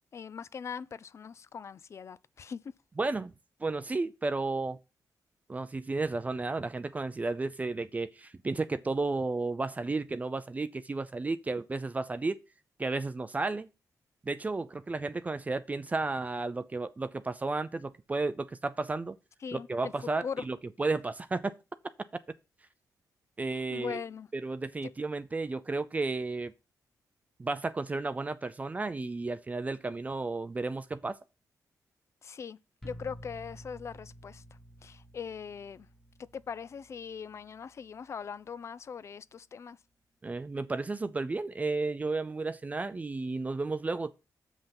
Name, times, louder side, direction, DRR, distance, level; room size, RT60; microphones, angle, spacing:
voice 1, 0.1-2.6 19.4-20.5 23.5-24.3 24.8-24.9 32.2-32.6 32.8-34.4 34.8-35.9 36.2-39.8, left 6 dB, 45° left, 0.5 m, -41 dB
voice 2, 3.0-3.3 3.6-4.8 5.5-12.4 12.8-13.7 14.3-19.2 19.5-21.5 23.4-24.0 24.4-26.5 27.4-31.2 40.2-44.1, right 3 dB, 20° right, 0.5 m, -33 dB
sound 1, 32.8-38.6, equal, 5° left, 1.1 m, -51 dB
7.1 x 5.5 x 5.9 m
wide cardioid pair, 140°, 7 cm